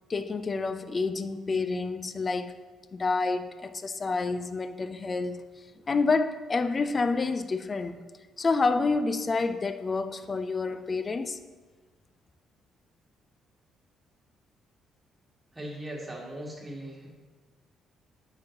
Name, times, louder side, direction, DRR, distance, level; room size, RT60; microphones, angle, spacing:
voice 1, 0.1-2.6 2.9-5.4 5.9-8.0 8.4-11.4, left 3 dB, 35° left, 0.5 m, -28 dB
voice 2, 15.5-17.1, right 1 dB, 15° right, 2.0 m, -39 dB
9.4 x 6.0 x 2.8 m
figure-of-eight pair, 45°, 0 cm